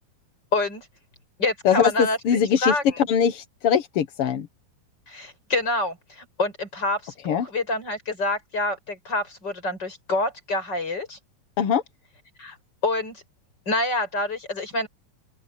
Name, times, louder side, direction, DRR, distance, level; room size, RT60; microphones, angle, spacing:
voice 1, 0.5-0.8 1.4-2.2 2.6-3.0 5.1-11.2 12.4-12.6 12.8-13.2 13.7-14.9, left 2 dB, 30° left, 7.1 m, -27 dB
voice 2, 1.6-2.7 3.1-4.5 7.2-7.5 11.6-11.8, left 7 dB, 60° left, 1.6 m, -22 dB
open air
omnidirectional pair, 3.9 m